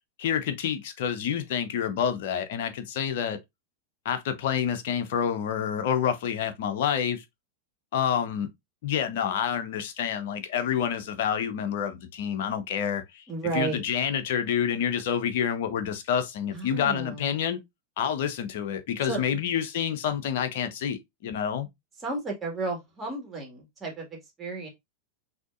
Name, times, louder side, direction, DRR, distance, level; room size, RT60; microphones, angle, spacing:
voice 1, 0.2-3.4 4.0-7.2 7.9-8.5 8.8-13.2 13.5-17.6 18.0-21.7, left 8 dB, 50° left, 0.8 m, -28 dB
voice 2, 13.3-13.8 16.5-17.3 19.0-19.4 22.0-24.7, right 3 dB, 15° right, 2.0 m, -33 dB
6.1 x 2.8 x 2.5 m
figure-of-eight pair, 90°, 0 cm